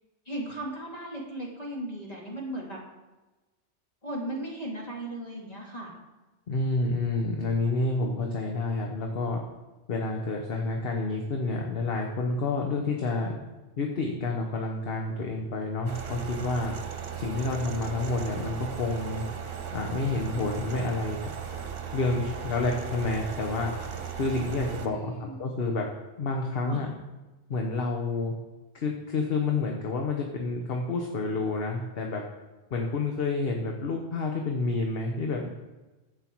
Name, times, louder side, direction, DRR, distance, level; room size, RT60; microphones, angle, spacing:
voice 1, 0.3-2.8 4.0-5.9 24.9-25.4 26.6-26.9, right 1 dB, 35° left, -3 dB, 2.6 m, -36 dB
voice 2, 6.5-9.4 9.9-13.4 13.8-16.7 17.1-19.2 19.7-21.3 21.9-23.7 24.2-25.8 26.2-26.9 27.5-28.3 28.8-32.2 32.7-35.5, left 3 dB, 60° left, 2 dB, 1.2 m, -29 dB
sound 1, 15.9-24.9, right 7 dB, 55° right, 1.1 m, -37 dB
11.0 x 8.0 x 4.5 m, 1.1 s
omnidirectional pair, 1.2 m